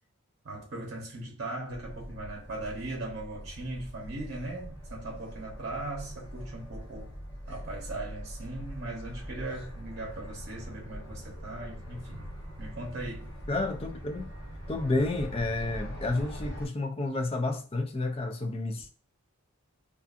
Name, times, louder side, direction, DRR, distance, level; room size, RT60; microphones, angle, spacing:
voice 1, 0.4-7.1 7.5-12.3 12.6-13.3, right 2 dB, 45° right, 0.8 m, -39 dB
sound 1, 1.7-16.7, equal, 55° left, 1.2 m, -42 dB
voice 2, 13.5-14.3 14.7-18.9, left 2 dB, 25° left, 0.3 m, -30 dB
2.5 x 2.4 x 2.4 m
head